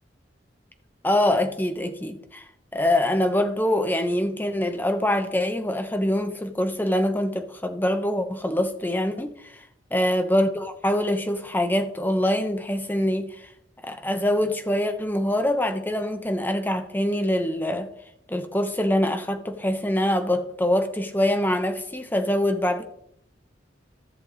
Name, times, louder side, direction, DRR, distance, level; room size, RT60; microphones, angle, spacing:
voice 1, 1.0-2.4 2.7-9.6 9.9-13.5 13.8-17.9 18.3-22.8, left 1 dB, 10° left, 0.9 m, -24 dB
14.0 x 6.7 x 4.0 m
head